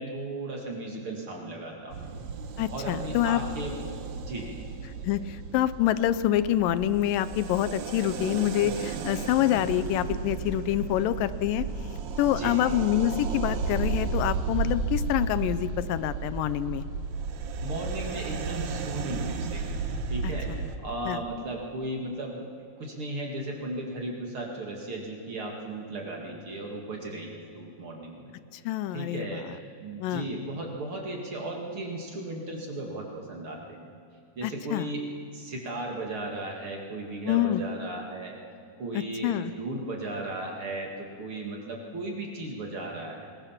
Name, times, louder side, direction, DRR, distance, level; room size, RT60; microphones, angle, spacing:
voice 1, 0.0-2.3 2.7-3.8 4.1-4.6 12.2-12.6 17.6-19.6 20.1-20.5 20.8-22.5 22.8-28.3 28.9-33.9 34.4-35.0 35.3-38.4 38.8-43.3, right 2 dB, 45° right, 0 dB, 2.6 m, -36 dB
sound 1, 1.9-20.8, right 4 dB, 65° right, 2.1 m, -33 dB
voice 2, 2.6-3.4 5.0-11.7 12.2-16.8 20.5-20.6 21.1-21.2 28.7-29.5 30.0-30.3 34.4-34.9 37.3-37.6 38.9-39.5, left 12 dB, 85° left, 14 dB, 2.3 m, -26 dB
21.5 x 21.0 x 5.8 m, 2.3 s
omnidirectional pair, 3.9 m